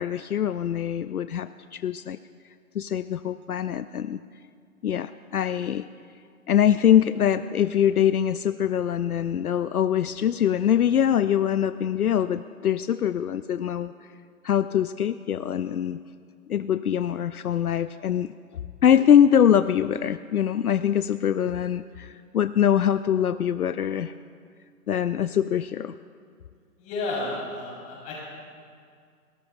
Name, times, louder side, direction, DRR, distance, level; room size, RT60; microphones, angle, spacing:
voice 1, 0.0-2.2 2.7-4.2 4.8-5.9 6.5-13.9 14.4-16.0 16.5-18.3 18.8-24.1 24.9-25.9, left 9 dB, 75° left, 13 dB, 0.5 m, -23 dB
voice 2, 26.8-28.1, left 2 dB, 15° left, -5 dB, 4.2 m, -31 dB
30.0 x 13.5 x 2.4 m, 2.2 s
figure-of-eight pair, 140°, 45 cm